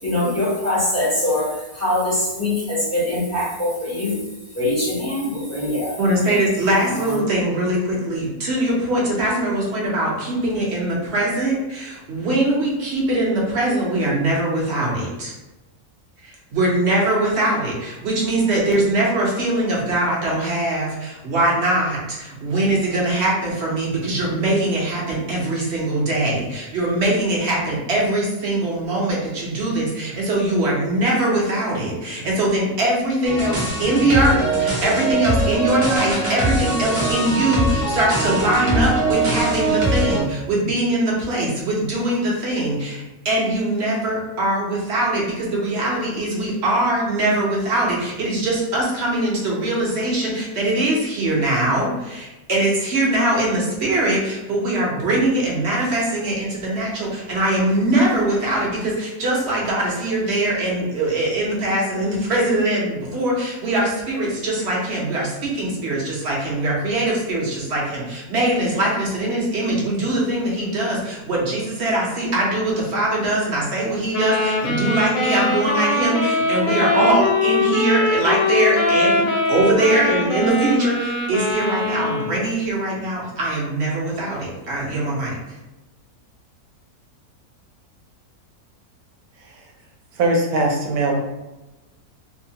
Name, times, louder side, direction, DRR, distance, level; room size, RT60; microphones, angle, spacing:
voice 1, 0.0-4.2 4.5-6.0 6.9-7.2, left 1 dB, 15° left, -8 dB, 0.5 m, -23 dB
voice 2, 6.0-15.3 16.2-79.2 79.5-85.4, right 1 dB, 55° right, -4 dB, 0.8 m, -22 dB
sound 1, 33.2-40.2, right 2 dB, 40° right, 0.4 m, -22 dB
sound 2, 74.1-82.5, left 2 dB, 65° left, 1.0 m, -22 dB
voice 3, 90.2-91.2, right 2 dB, 75° right, 0 dB, 1.1 m, -20 dB
2.7 x 2.2 x 2.7 m, 1.0 s
omnidirectional pair, 1.6 m